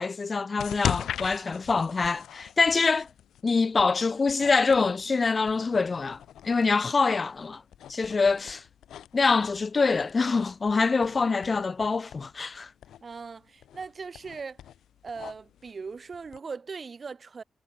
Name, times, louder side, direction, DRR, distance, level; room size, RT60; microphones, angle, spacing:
voice 1, 0.0-3.1 3.4-6.2 6.4-7.6 7.9-8.6 9.1-12.7, left 4 dB, 45° left, 6.0 m, -25 dB
sound 1, 0.6-16.4, left 10 dB, 90° left, 2.7 m, -40 dB
voice 2, 13.0-14.6 15.0-17.4, right 5 dB, 50° right, 7.5 m, -39 dB
cardioid pair, 55°, 0 cm